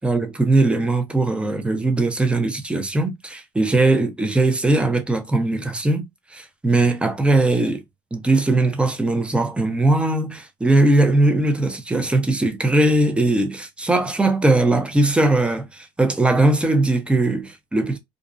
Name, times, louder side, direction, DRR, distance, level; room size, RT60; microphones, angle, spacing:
voice 1, 0.0-6.0 6.3-7.8 8.1-18.0, right 2 dB, 10° right, 0.6 m, -19 dB
2.5 x 2.0 x 2.4 m
supercardioid pair, 85°, 9 cm